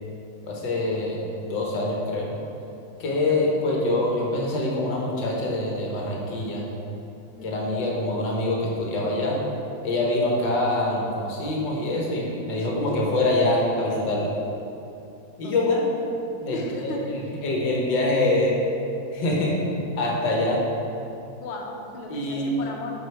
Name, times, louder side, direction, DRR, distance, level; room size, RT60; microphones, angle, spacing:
voice 1, 0.4-2.3 3.0-6.7 7.4-9.4 9.8-14.3 15.4-15.8 16.4-17.0 17.4-18.6 19.1-19.6 20.0-20.6 22.1-22.5, left 2 dB, 65° left, -2 dB, 1.7 m, -25 dB
voice 2, 3.3-3.8 7.4-7.9 12.5-13.0 15.4-15.9 16.5-17.1 21.4-22.9, left 2 dB, 85° left, 1 dB, 1.7 m, -37 dB
6.4 x 5.9 x 4.5 m, 2.8 s
omnidirectional pair, 2.2 m